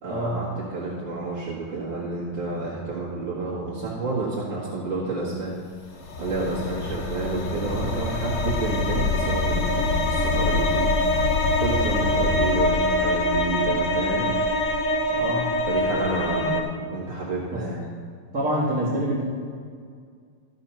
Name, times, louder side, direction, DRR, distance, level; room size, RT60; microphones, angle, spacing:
voice 1, 0.0-5.6 6.2-10.9 11.6-14.3 15.7-16.6 16.9-17.8, right 3 dB, 75° right, -8 dB, 2.5 m, -29 dB
sound 1, 5.9-16.6, left 2 dB, 70° left, 1.7 m, -24 dB
voice 2, 15.1-15.5 15.9-16.5 17.5-17.7 18.3-19.2, equal, 45° right, -10 dB, 2.6 m, -27 dB
13.5 x 5.5 x 5.7 m, 2.1 s
omnidirectional pair, 2.1 m